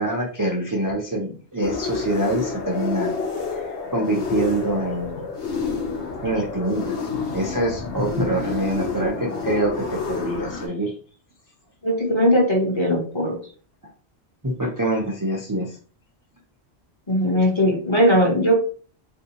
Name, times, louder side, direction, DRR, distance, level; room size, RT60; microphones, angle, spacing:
voice 1, 0.0-3.1 3.5-5.3 6.2-7.1 7.3-10.9 14.4-15.8, right 1 dB, 30° right, -2 dB, 0.4 m, -25 dB
sound 1, 1.6-10.7, left 5 dB, 85° left, 1.0 m, -29 dB
voice 2, 11.8-13.4 17.1-18.6, equal, 30° left, 0 dB, 0.7 m, -19 dB
3.5 x 2.6 x 2.8 m, 0.41 s
omnidirectional pair, 1.1 m